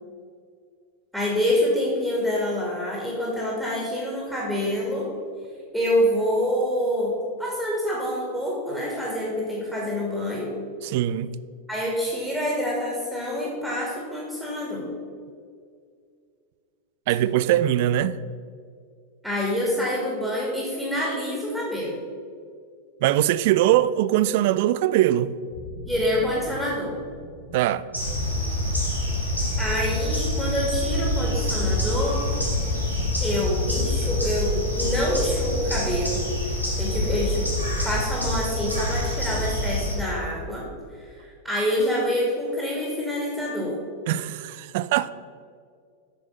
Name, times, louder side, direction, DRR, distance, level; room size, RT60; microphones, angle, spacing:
voice 1, 1.1-5.1 5.7-10.6 11.7-14.9 19.2-22.0 25.9-27.0 29.6-32.3 33.2-36.2 36.8-37.5 37.8-40.7 41.0-43.8, equal, ahead, 2.3 m, -26 dB
voice 2, 10.8-11.4 17.1-18.2 23.0-25.4 27.5-27.8 44.1-45.1, right 13 dB, 50° right, 0.3 m, -22 dB
sound 1, 25.5-30.5 32.1-37.8, left 1 dB, 45° left, 1.3 m, -42 dB
sound 2, 27.9-40.0, left 1 dB, 90° left, 2.3 m, -26 dB
9.0 x 6.3 x 5.5 m
figure-of-eight pair, 90°, 0 cm